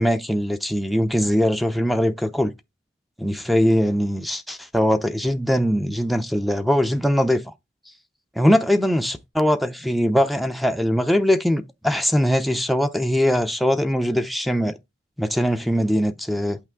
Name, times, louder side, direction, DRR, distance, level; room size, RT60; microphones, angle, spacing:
voice 1, 0.0-2.5 3.2-7.4 8.4-14.8 15.2-16.6, equal, ahead, 0.5 m, -21 dB
8.5 x 5.7 x 3.6 m
head